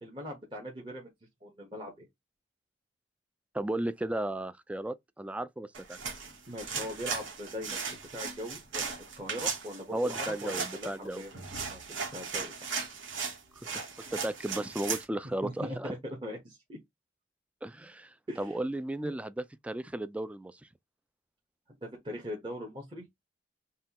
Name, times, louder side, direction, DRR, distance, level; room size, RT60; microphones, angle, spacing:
voice 1, 0.0-1.1 1.4-2.1 6.5-11.3 11.7-12.8 15.4-16.8 18.3-18.6 19.0-19.1 21.8-23.1, equal, 25° right, 1.0 m, -41 dB
voice 2, 3.5-6.0 9.9-11.2 13.6-13.7 14.1-15.9 17.6-20.6, right 1 dB, 5° right, 0.3 m, -35 dB
sound 1, 5.7-15.1, right 5 dB, 90° right, 1.2 m, -37 dB
5.5 x 2.3 x 2.9 m
head